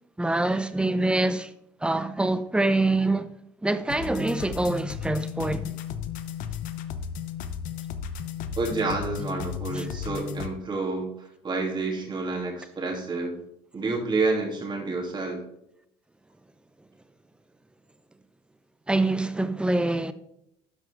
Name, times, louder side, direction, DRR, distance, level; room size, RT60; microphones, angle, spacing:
voice 1, 0.2-1.5 1.8-3.3 3.6-5.8 9.7-9.9 18.9-20.1, right 2 dB, 5° right, 0.7 m, -25 dB
sound 1, 3.9-10.5, left 8 dB, 70° left, 0.8 m, -34 dB
voice 2, 8.6-11.1 11.4-13.4 13.7-15.4, right 3 dB, 35° right, 3.0 m, -29 dB
12.0 x 6.1 x 3.6 m
supercardioid pair, 90°, 14 cm